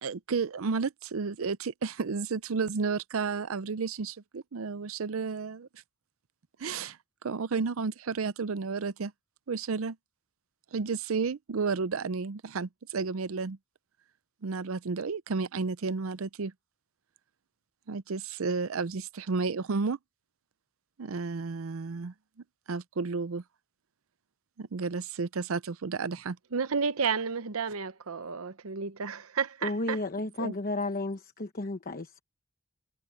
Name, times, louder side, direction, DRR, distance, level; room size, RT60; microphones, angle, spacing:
voice 1, 0.0-5.7 6.6-7.0 7.2-9.1 9.5-10.0 10.7-13.6 14.4-16.5 17.9-20.0 21.0-22.1 22.7-23.4 24.6-26.4 30.4-30.5, right 4 dB, 70° right, 0.6 m, -32 dB
voice 2, 26.5-30.0, right 5 dB, 85° right, 0.9 m, -31 dB
voice 3, 29.6-32.2, left 2 dB, 45° left, 1.0 m, -33 dB
head